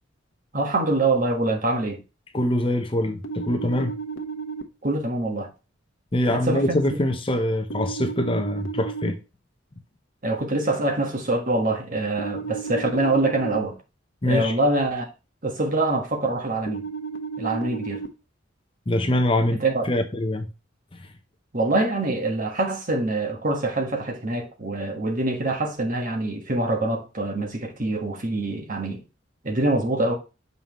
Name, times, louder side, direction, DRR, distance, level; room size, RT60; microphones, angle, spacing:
voice 1, 0.5-2.0 4.8-5.5 6.3-7.0 10.2-13.8 14.2-15.1 15.4-16.9 17.4-18.0 19.5-19.8 21.5-29.0 29.4-30.1, right 2 dB, 45° right, 1.5 m, -25 dB
voice 2, 2.3-3.9 6.1-9.2 14.2-14.5 18.9-19.6 19.8-20.5 21.0-21.1, left 1 dB, 25° left, 0.8 m, -24 dB
sound 1, 3.2-4.6 7.7-9.1 12.2-13.6 16.7-18.1, right 5 dB, 80° left, 1.0 m, -33 dB
6.9 x 5.5 x 3.1 m
head